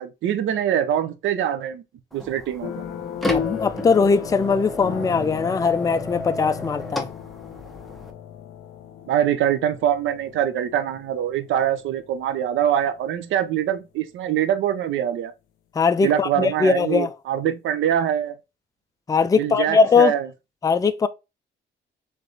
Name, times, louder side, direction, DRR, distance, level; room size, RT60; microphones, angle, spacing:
voice 1, 0.0-1.8 2.1-2.8 9.1-15.3 16.0-18.4 19.3-20.3, right 10 dB, 75° right, 0.6 m, -24 dB
sound 1, 2.1-8.1, left 1 dB, ahead, 0.9 m, -33 dB
sound 2, 2.6-13.4, left 9 dB, 80° left, 0.6 m, -36 dB
voice 2, 3.3-7.1 15.8-17.1 19.1-20.1 20.6-21.1, left 5 dB, 20° left, 0.4 m, -20 dB
3.4 x 3.2 x 3.8 m
cardioid pair, 90°, 20 cm